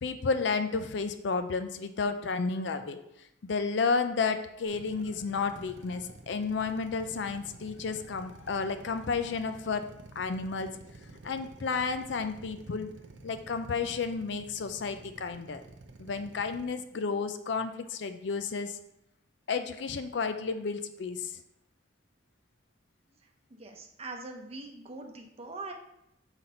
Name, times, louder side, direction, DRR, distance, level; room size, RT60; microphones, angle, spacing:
voice 1, 0.0-3.0 3.4-9.8 10.2-10.7 11.2-12.9 13.2-15.6 16.0-18.8 19.5-21.3, left 4 dB, 60° left, 9 dB, 0.4 m, -32 dB
Drill, 4.7-16.6, right 2 dB, 65° right, 0.6 m, -50 dB
voice 2, 23.5-25.7, right 3 dB, 30° right, 2 dB, 0.8 m, -42 dB
5.8 x 4.0 x 4.3 m, 0.81 s
head